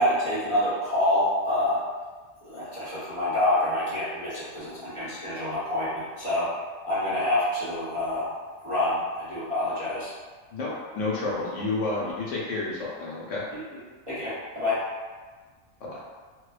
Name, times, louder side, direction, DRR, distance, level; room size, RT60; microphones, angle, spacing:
voice 1, 0.0-1.8 2.4-6.5 6.8-8.3 8.6-10.1 13.5-13.6 14.1-14.8, left 1 dB, 30° right, -13 dB, 0.8 m, -27 dB
voice 2, 10.5-13.4 15.8-16.0, left 3 dB, 70° left, -6 dB, 0.9 m, -30 dB
2.5 x 2.1 x 2.3 m, 1.4 s
omnidirectional pair, 1.4 m